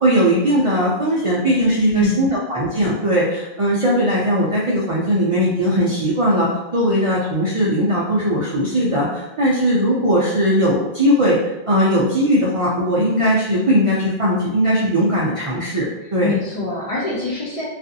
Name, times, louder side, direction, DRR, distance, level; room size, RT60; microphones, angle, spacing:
voice 1, 0.0-11.4 11.7-16.3, equal, 50° right, -6 dB, 0.4 m, -19 dB
voice 2, 1.9-2.3 16.2-17.7, left 2 dB, 45° left, -6 dB, 0.5 m, -24 dB
2.5 x 2.4 x 2.6 m, 0.99 s
omnidirectional pair, 1.1 m